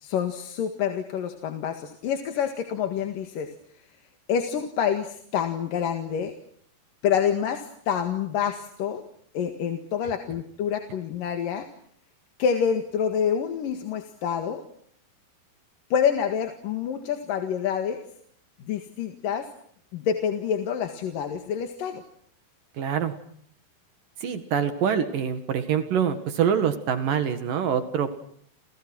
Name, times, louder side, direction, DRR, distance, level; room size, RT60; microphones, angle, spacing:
voice 1, 0.0-3.5 4.3-6.3 7.0-9.0 9.3-11.7 12.4-14.6 15.9-18.0 18.7-19.5 19.9-22.0, left 8 dB, 60° left, 6 dB, 3.3 m, -27 dB
voice 2, 22.7-23.1 24.2-28.2, right 8 dB, 60° right, 10 dB, 3.2 m, -25 dB
29.5 x 29.5 x 6.2 m, 0.63 s
omnidirectional pair, 4.6 m